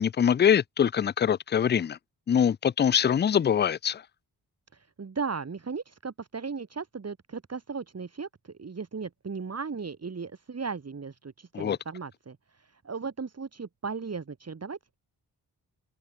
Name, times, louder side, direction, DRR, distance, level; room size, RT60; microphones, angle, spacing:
voice 1, 0.0-2.0 2.3-4.0 11.5-11.8, left 8 dB, 30° left, 0.4 m, -23 dB
voice 2, 4.7-14.8, right 5 dB, 40° right, 2.0 m, -36 dB
cardioid pair, 55°, 39 cm